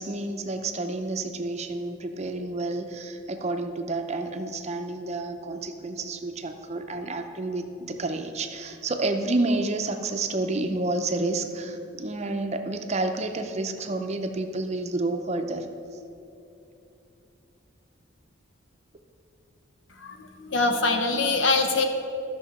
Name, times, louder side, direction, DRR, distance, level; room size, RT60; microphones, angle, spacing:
voice 1, 0.0-15.7, right 2 dB, 35° right, 6 dB, 0.6 m, -29 dB
voice 2, 20.0-21.8, left 3 dB, 70° left, 5 dB, 0.9 m, -24 dB
13.0 x 6.1 x 4.2 m, 2.7 s
head